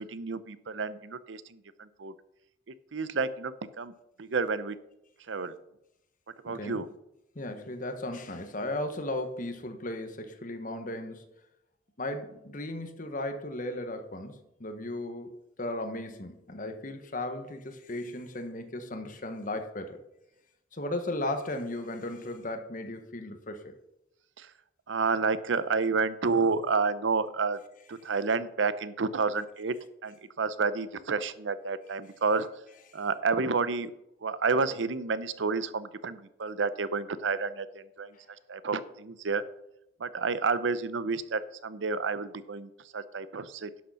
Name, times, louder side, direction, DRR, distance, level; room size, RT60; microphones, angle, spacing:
voice 1, 0.0-2.1 2.9-4.8 5.3-5.6 6.4-6.9 24.4-24.5 24.9-27.6 27.9-29.7 30.0-32.5 32.9-33.9 34.2-38.1 38.5-39.4 40.0-43.8, right 4 dB, 75° right, 15 dB, 0.6 m, -30 dB
voice 2, 6.5-6.8 7.3-11.2 12.0-15.3 15.6-20.0 20.7-23.7, left 1 dB, 45° left, 7 dB, 1.3 m, -36 dB
11.0 x 6.6 x 5.7 m, 0.84 s
head